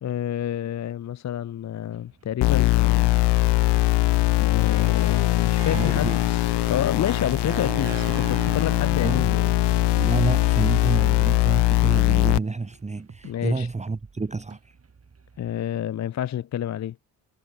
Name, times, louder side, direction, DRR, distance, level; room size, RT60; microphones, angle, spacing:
voice 1, 0.0-3.8 4.4-9.5 13.2-13.7 15.4-17.0, left 10 dB, 40° left, 0.7 m, -29 dB
sound 1, 1.9-15.6, right 5 dB, 35° right, 4.4 m, -51 dB
sound 2, 2.4-12.4, left 18 dB, 75° left, 0.8 m, -21 dB
Harp, 4.5-12.8, right 24 dB, 90° right, 1.1 m, -41 dB
voice 2, 5.7-6.3 9.0-9.4 10.0-14.7, right 3 dB, 15° right, 1.1 m, -29 dB
supercardioid pair, 65°, 42 cm